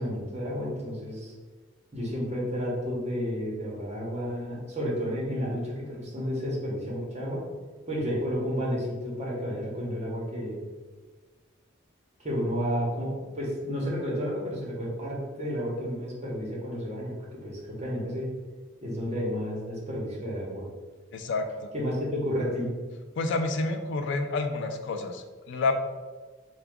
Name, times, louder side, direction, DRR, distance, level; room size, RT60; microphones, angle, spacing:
voice 1, 0.0-1.3 1.9-7.4 7.9-10.6 12.2-18.3 18.8-20.7 21.7-22.7, equal, 35° right, -4 dB, 1.1 m, -31 dB
voice 2, 21.1-21.4 23.2-25.9, left 3 dB, 60° left, 6 dB, 0.3 m, -29 dB
3.7 x 2.3 x 3.5 m, 1.4 s
head